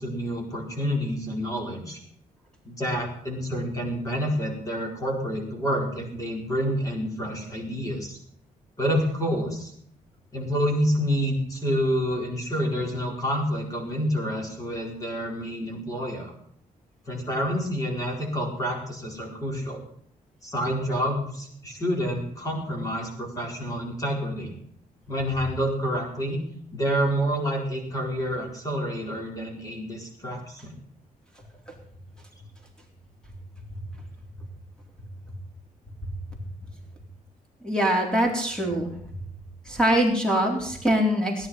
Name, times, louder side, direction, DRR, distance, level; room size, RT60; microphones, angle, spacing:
voice 1, 0.0-2.0 2.6-8.2 8.8-9.7 10.3-16.3 17.1-19.8 20.4-24.5 25.1-26.4 26.7-30.8, equal, 25° left, 1 dB, 4.4 m, -28 dB
voice 2, 37.6-38.9 39.6-41.5, equal, 5° left, 1 dB, 3.8 m, -23 dB
17.5 x 10.5 x 5.7 m, 0.66 s
wide cardioid pair, 170°, 14 cm